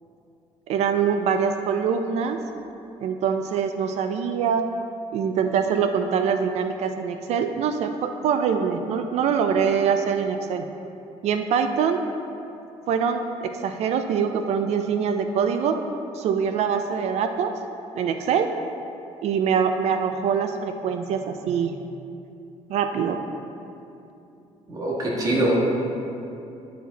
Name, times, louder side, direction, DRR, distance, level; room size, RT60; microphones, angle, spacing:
voice 1, 0.7-2.4 3.0-4.7 5.1-10.7 11.2-12.0 12.9-15.8 16.1-17.5 17.9-18.5 19.2-21.8 22.7-23.2, right 7 dB, 65° right, 7 dB, 0.4 m, -24 dB
voice 2, 24.7-25.8, right 1 dB, 30° right, -4 dB, 1.5 m, -23 dB
10.0 x 4.8 x 4.0 m, 2.8 s
cardioid pair, 145°, 12 cm